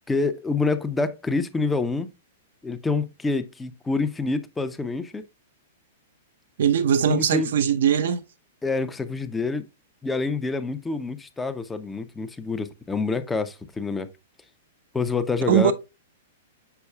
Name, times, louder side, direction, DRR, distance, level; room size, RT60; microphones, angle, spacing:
voice 1, 0.1-2.1 2.6-5.3 7.1-7.5 8.6-9.6 10.0-14.1 14.9-15.7, left 3 dB, 10° left, 0.8 m, -27 dB
voice 2, 6.6-8.2 15.5-15.7, right 8 dB, 65° right, 0.7 m, -20 dB
7.0 x 6.2 x 2.3 m
hypercardioid pair, 110°, 0 cm